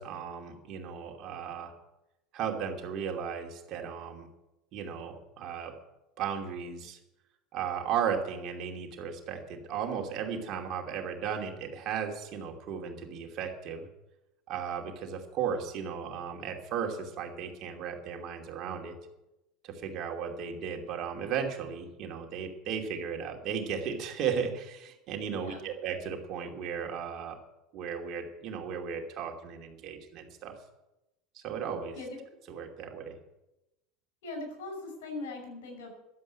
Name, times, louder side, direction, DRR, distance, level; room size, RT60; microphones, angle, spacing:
voice 1, 0.0-1.7 2.3-4.3 4.7-5.8 6.2-7.0 7.5-13.9 14.5-19.0 19.6-27.4 27.7-30.5 31.3-32.0 32.5-33.2, right 7 dB, 50° right, 3 dB, 2.7 m, -35 dB
voice 2, 25.3-25.7 31.9-32.2 34.2-35.9, left 2 dB, 85° left, 4 dB, 5.6 m, -40 dB
12.0 x 8.0 x 9.5 m, 0.95 s
supercardioid pair, 120°, 0 cm